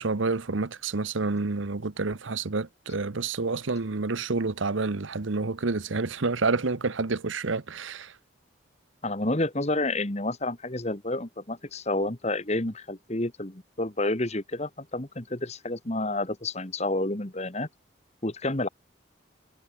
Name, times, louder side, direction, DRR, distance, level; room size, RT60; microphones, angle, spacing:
voice 1, 0.0-8.1, right 3 dB, 75° right, 1.0 m, -28 dB
voice 2, 9.0-17.7 18.2-18.7, left 2 dB, 35° left, 1.7 m, -29 dB
head